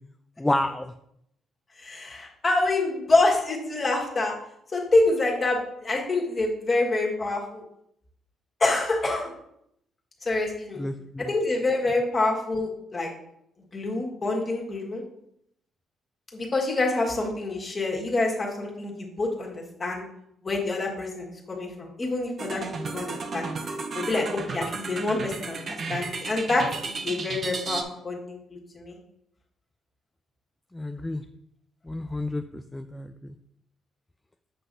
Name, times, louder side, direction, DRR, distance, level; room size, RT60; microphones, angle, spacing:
voice 1, 0.4-0.9 10.8-11.3 30.7-31.2 31.9-33.1, left 1 dB, 10° left, 7 dB, 0.3 m, -29 dB
voice 2, 1.8-4.3 4.7-7.6 8.6-9.3 10.2-10.8 11.3-13.1 13.7-15.0 16.3-20.0 20.4-22.6 22.9-23.4 23.9-29.0, left 2 dB, 30° left, -1 dB, 1.7 m, -26 dB
sound 1, 22.4-27.8, right 4 dB, 45° right, 0.7 m, -33 dB
7.8 x 5.9 x 2.7 m, 0.74 s
cardioid pair, 115°, 0 cm